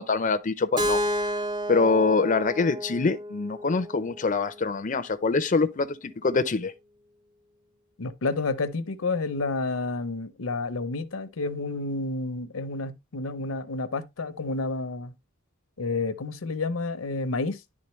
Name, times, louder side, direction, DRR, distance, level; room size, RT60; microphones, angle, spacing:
voice 1, 0.0-1.3 1.7-6.7, left 4 dB, 40° left, 0.5 m, -25 dB
Keyboard (musical), 0.8-4.7, equal, 20° right, 0.6 m, -31 dB
voice 2, 8.0-15.1 15.8-17.6, left 3 dB, 80° left, 0.7 m, -30 dB
10.5 x 3.7 x 3.1 m
head